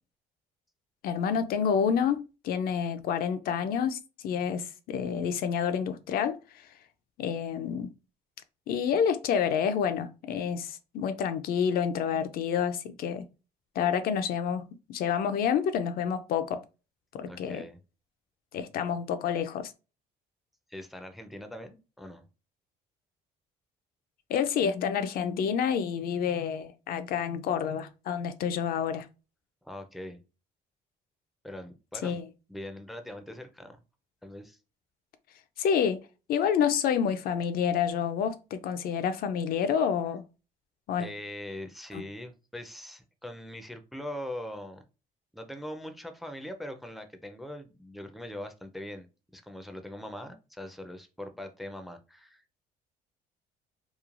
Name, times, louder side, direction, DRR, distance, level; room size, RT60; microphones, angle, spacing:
voice 1, 1.0-6.7 7.2-7.9 8.7-13.3 13.8-16.6 17.1-17.6 18.5-19.7 24.3-29.1 32.0-32.3 35.6-36.0 36.3-40.2 40.9-41.1 41.9-42.0, left 7 dB, 60° left, 0.4 m, -28 dB
voice 2, 17.2-17.8 20.7-22.2 29.6-30.2 31.4-32.2 32.5-33.8 34.2-34.6 41.0-44.8 45.3-49.1 49.3-52.6, left 1 dB, ahead, 0.4 m, -41 dB
3.0 x 2.2 x 2.4 m
cardioid pair, 110°, 17 cm